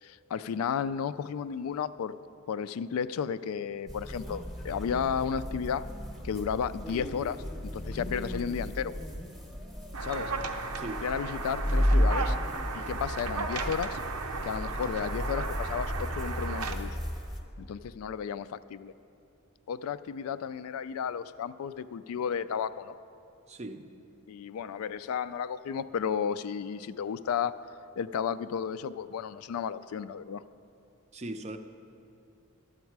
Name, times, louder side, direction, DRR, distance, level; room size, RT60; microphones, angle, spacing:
voice 1, 0.0-2.1 2.5-5.9 6.2-8.9 10.0-10.3 11.0-12.4 12.7-14.0 14.4-17.0 17.6-18.9 19.7-22.9 24.3-27.6 28.0-30.4, left 7 dB, 75° left, 15 dB, 0.3 m, -33 dB
sound 1, 3.9-17.4, equal, ahead, 0.8 m, -33 dB
sound 2, 9.9-16.7, right 4 dB, 90° right, 0.7 m, -35 dB
voice 2, 23.5-23.9 31.1-31.6, right 1 dB, 30° right, 8 dB, 0.4 m, -39 dB
12.0 x 8.1 x 4.6 m, 2.6 s
head